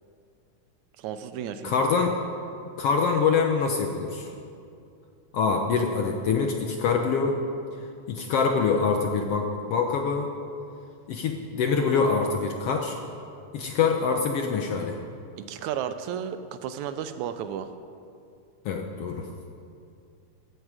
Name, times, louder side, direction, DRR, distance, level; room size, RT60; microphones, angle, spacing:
voice 1, 1.0-1.7 15.4-17.7, right 9 dB, 80° right, 10 dB, 1.9 m, -33 dB
voice 2, 1.6-2.2 2.8-4.3 5.3-7.3 8.1-10.3 11.1-13.0 13.5-15.0 18.6-19.2, left 5 dB, 70° left, 3 dB, 1.5 m, -25 dB
16.0 x 12.5 x 4.9 m, 2.5 s
omnidirectional pair, 3.5 m